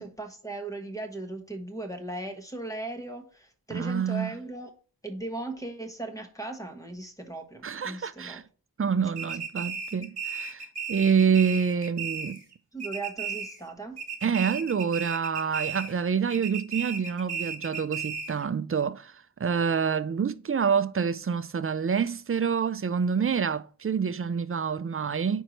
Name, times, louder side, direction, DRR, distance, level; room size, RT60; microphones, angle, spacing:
voice 1, 0.0-4.7 5.0-8.4 12.7-14.0, right 2 dB, 10° left, 1.2 m, -37 dB
voice 2, 3.7-4.3 7.6-8.4 8.8-12.4 14.2-19.1 19.4-25.4, right 6 dB, 35° right, 0.4 m, -27 dB
sound 1, 9.2-12.5 12.8-13.7 14.0-16.0 16.3-18.4, right 6 dB, 65° right, 1.2 m, -35 dB
4.6 x 4.4 x 5.2 m
wide cardioid pair, 50°, 42 cm